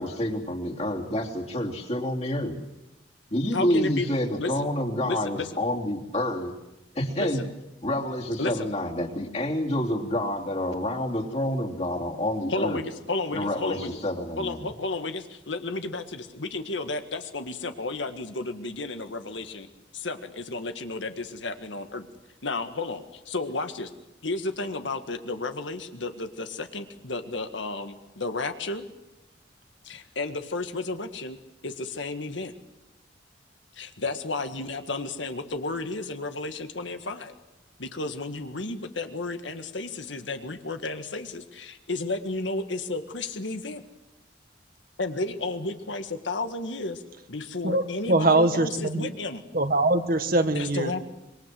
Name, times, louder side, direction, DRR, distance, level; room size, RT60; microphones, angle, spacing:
voice 1, 0.0-2.6 3.3-6.5 6.9-7.4 7.8-12.8 13.3-14.7, left 1 dB, 35° left, 0 dB, 3.3 m, -28 dB
voice 2, 3.5-4.1 4.4-4.5 5.0-5.5 7.2-7.5 8.4-8.7 12.5-14.0 14.4-19.7 19.9-22.1 22.4-23.9 24.2-28.9 29.8-31.4 31.6-32.5 33.7-37.3 37.8-43.8 45.0-47.0 47.3-49.4 50.5-51.0, left 3 dB, 80° left, 7 dB, 1.8 m, -32 dB
voice 3, 48.1-49.1 49.5-50.9, right 2 dB, 50° right, 8 dB, 1.7 m, -22 dB
26.0 x 23.0 x 7.8 m, 0.97 s
head